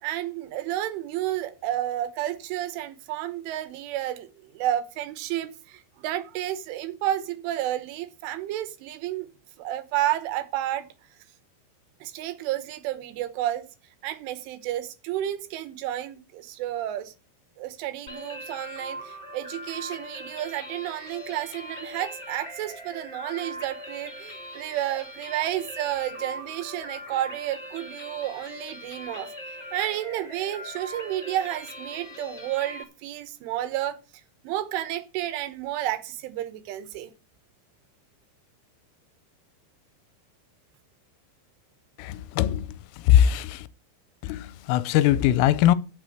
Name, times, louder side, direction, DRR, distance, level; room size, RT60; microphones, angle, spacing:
voice 1, 0.0-9.3 9.6-10.9 12.0-13.7 14.0-17.1 17.6-29.3 29.7-34.0 34.4-37.1, right 13 dB, 75° right, 3.5 m, -31 dB
sound 1, 18.1-32.8, left 1 dB, 35° left, 1.1 m, -41 dB
voice 2, 42.1-42.6 43.1-43.5 44.2-44.4 44.7-45.8, left 11 dB, 85° left, 3.3 m, -20 dB
9.9 x 6.8 x 7.8 m
omnidirectional pair, 5.8 m